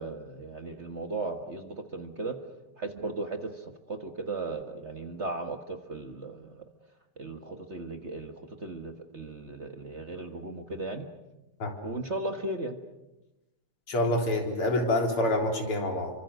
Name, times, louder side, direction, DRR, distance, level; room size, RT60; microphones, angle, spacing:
voice 1, 0.0-2.4 2.8-6.6 7.2-8.3 8.6-11.1 11.8-12.8, right 2 dB, 35° right, 6 dB, 1.5 m, -36 dB
voice 2, 13.9-16.1, left 1 dB, 80° left, 2 dB, 4.7 m, -27 dB
29.0 x 24.5 x 6.6 m, 0.98 s
omnidirectional pair, 2.4 m